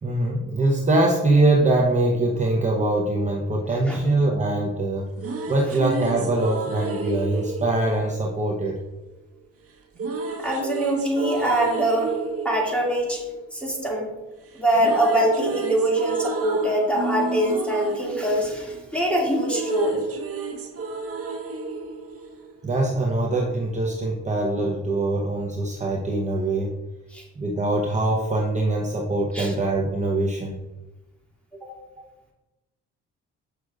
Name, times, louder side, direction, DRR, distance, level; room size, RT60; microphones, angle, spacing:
voice 1, 0.0-5.1 5.5-8.8 22.6-26.7 27.4-30.6, right 2 dB, 25° right, -2 dB, 0.9 m, -23 dB
sound 1, 4.9-9.1 10.0-14.2 14.5-23.0, right 4 dB, 50° right, 1.0 m, -32 dB
voice 2, 10.4-12.1 12.4-13.2 13.5-14.1 14.5-20.0 27.1-27.2 29.3-29.5 31.6-31.7, right 1 dB, 5° left, -3 dB, 2.2 m, -23 dB
7.8 x 5.9 x 2.4 m, 1.0 s
cardioid pair, 90°, 30 cm